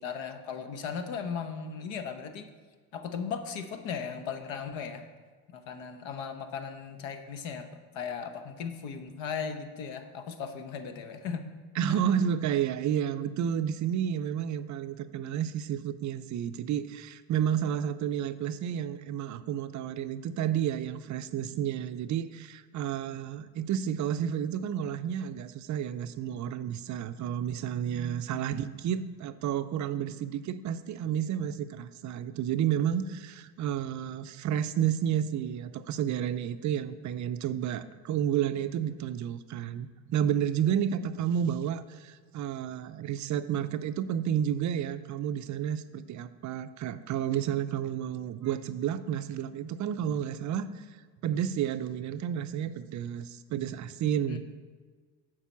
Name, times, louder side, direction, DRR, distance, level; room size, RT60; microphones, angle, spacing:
voice 1, 0.0-2.5 2.9-5.0 5.5-7.7 7.9-11.4 11.9-12.0 28.3-28.5 54.3-54.4, left 6 dB, 65° left, 8 dB, 1.0 m, -37 dB
voice 2, 11.8-54.4, right 9 dB, 40° right, 11 dB, 0.5 m, -31 dB
7.3 x 4.8 x 7.1 m, 1.5 s
supercardioid pair, 85°, 49 cm